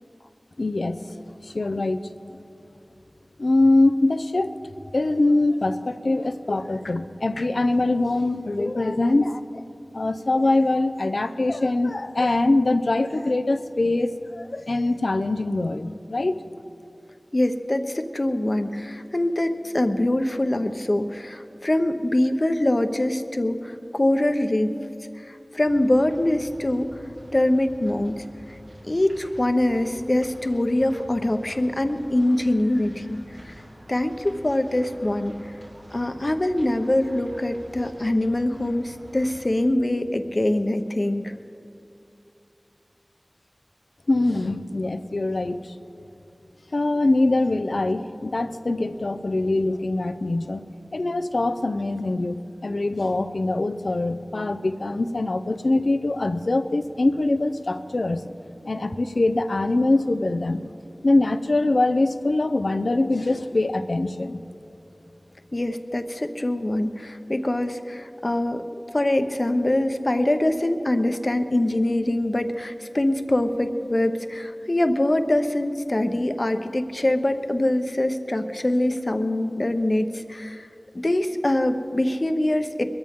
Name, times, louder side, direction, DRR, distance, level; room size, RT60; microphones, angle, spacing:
voice 1, 0.6-1.0 1.4-2.0 3.4-4.5 4.9-9.6 9.9-16.4 44.1-46.1 46.7-50.6 50.9-58.2 58.7-60.7 61.0-64.4, left 2 dB, 85° left, 10 dB, 0.6 m, -23 dB
voice 2, 17.3-24.7 25.2-26.9 27.3-28.2 28.8-33.2 33.4-33.5 33.9-35.3 35.9-41.3 65.5-68.6 68.9-80.7 81.0-82.8, left 1 dB, 50° left, 7 dB, 0.9 m, -23 dB
sound 1, 25.6-39.7, equal, 75° right, 3.9 m, -47 dB
22.0 x 14.0 x 3.7 m, 2.6 s
wide cardioid pair, 40°, 0 cm